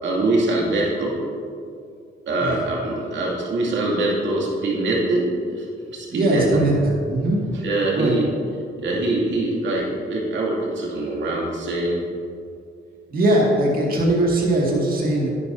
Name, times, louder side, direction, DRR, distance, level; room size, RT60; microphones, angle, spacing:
voice 1, 0.0-1.2 2.3-5.3 5.6-5.7 5.9-6.6 7.5-8.2 8.8-12.0, right 2 dB, 65° right, -4 dB, 2.5 m, -23 dB
voice 2, 6.1-7.4 7.9-8.2 13.1-15.3, right 1 dB, 45° right, -3 dB, 2.2 m, -20 dB
11.0 x 9.7 x 2.7 m, 2.4 s
cardioid pair, 90°, 20 cm